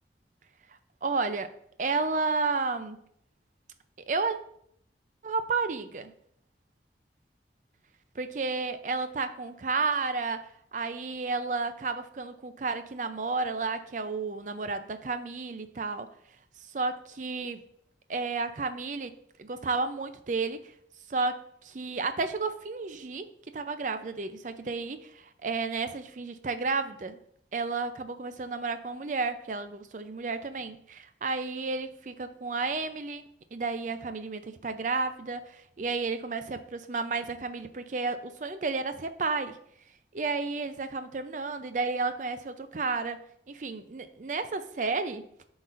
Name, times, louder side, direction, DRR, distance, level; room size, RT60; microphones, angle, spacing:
voice 1, 1.0-1.5 1.8-3.0 4.1-4.4 5.2-6.1 8.2-10.4 10.7-16.1 16.7-17.6 18.1-20.6 21.1-23.3 23.5-27.2 27.5-39.6 40.1-45.2, right 4 dB, 45° right, 10 dB, 0.5 m, -32 dB
11.5 x 4.0 x 2.5 m, 0.68 s
head